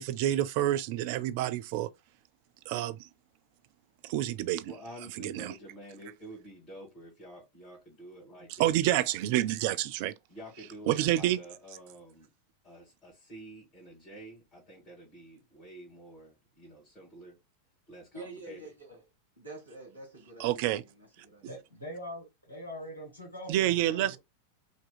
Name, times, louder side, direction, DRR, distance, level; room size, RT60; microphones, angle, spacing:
voice 1, 0.0-1.9 2.7-3.1 4.0-4.7 5.2-5.5 8.6-10.1 10.9-11.4 20.4-20.8 23.5-24.2, right 13 dB, 45° right, 0.4 m, -28 dB
voice 2, 4.6-9.0 10.3-12.3 12.6-17.4 17.9-18.6, right 1 dB, 30° left, 2.0 m, -49 dB
voice 3, 18.1-19.0 19.4-21.5, right 2 dB, 80° right, 1.6 m, -47 dB
voice 4, 21.4-24.2, equal, 75° left, 2.1 m, -43 dB
5.1 x 2.8 x 2.2 m
figure-of-eight pair, 90°, 0 cm